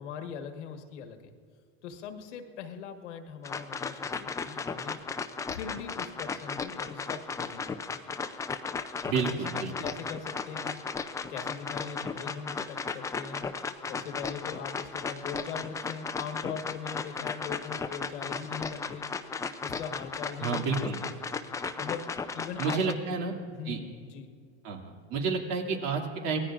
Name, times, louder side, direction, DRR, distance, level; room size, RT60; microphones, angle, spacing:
voice 1, 0.0-1.3 1.8-5.0 5.5-7.9 9.1-10.8 11.3-13.4 13.9-19.1 19.6-20.6 21.0-21.2 21.8-23.0 23.5-24.3, left 7 dB, 85° left, 5 dB, 1.5 m, -41 dB
sound 1, 3.4-22.9, left 5 dB, 10° left, 0.4 m, -35 dB
voice 2, 9.1-9.7 20.4-21.0 22.6-23.3 23.7-23.8 24.6-26.4, right 4 dB, 65° right, 1 dB, 2.5 m, -30 dB
24.0 x 18.5 x 2.5 m, 2.1 s
supercardioid pair, 120°, 34 cm